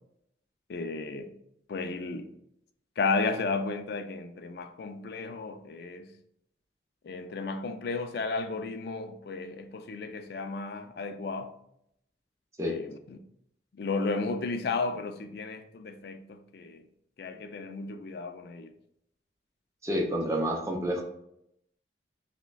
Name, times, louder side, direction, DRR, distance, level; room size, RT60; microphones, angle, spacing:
voice 1, 0.7-1.3 1.7-2.3 3.0-6.1 7.0-11.5 12.7-13.2 13.7-16.8 17.2-18.7, left 3 dB, 55° left, 0.3 m, -33 dB
voice 2, 19.8-21.0, equal, 15° right, 0.5 m, -29 dB
5.8 x 2.1 x 2.3 m
head